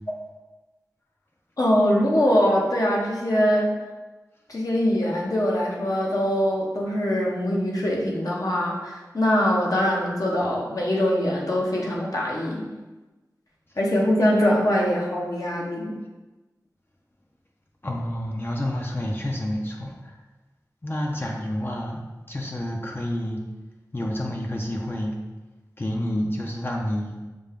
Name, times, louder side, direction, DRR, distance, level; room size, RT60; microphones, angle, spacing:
voice 1, 1.6-3.7 4.5-12.7 13.8-15.9, equal, 60° left, -3 dB, 0.8 m, -23 dB
voice 2, 17.8-20.2 20.8-23.4 23.9-25.1 25.8-27.2, left 1 dB, 30° left, -1 dB, 0.5 m, -29 dB
5.1 x 2.2 x 3.5 m, 1.2 s
wide cardioid pair, 50°, 7 cm